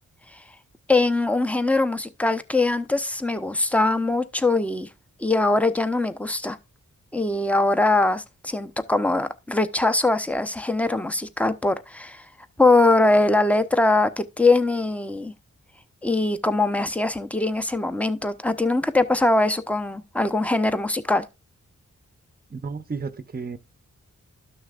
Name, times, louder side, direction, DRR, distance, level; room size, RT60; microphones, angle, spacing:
voice 1, 0.9-4.9 5.2-6.6 7.1-12.3 12.6-15.3 16.0-21.3, left 2 dB, 5° left, 0.8 m, -22 dB
voice 2, 22.5-23.6, right 5 dB, 30° right, 0.7 m, -32 dB
12.5 x 6.3 x 2.5 m
cardioid pair, 60°, 31 cm